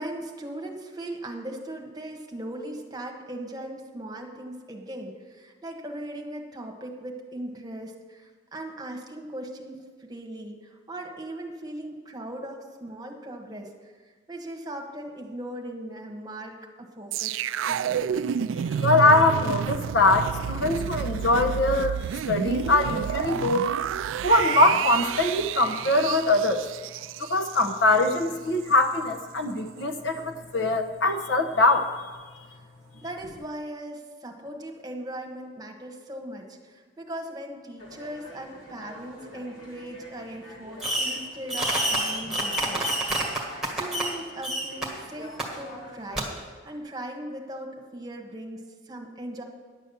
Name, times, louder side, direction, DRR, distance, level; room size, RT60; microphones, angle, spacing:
voice 1, 0.0-13.9 14.3-18.0 33.0-43.1 43.7-49.4, right 1 dB, 20° right, 2 dB, 1.3 m, -39 dB
sound 1, 17.1-28.3 28.6-28.8, right 8 dB, 80° right, 0.3 m, -30 dB
voice 2, 18.8-23.7 24.2-26.7 27.2-31.9, left 2 dB, 65° left, 6 dB, 1.0 m, -22 dB
sound 2, 37.8-46.3, equal, 85° left, 3.2 m, -46 dB
Fireworks, 40.8-41.2 41.5-44.2 44.4-44.9 45.4-45.5 46.2-46.3, right 1 dB, ahead, 1.6 m, -27 dB
10.5 x 7.5 x 6.9 m, 1.5 s
head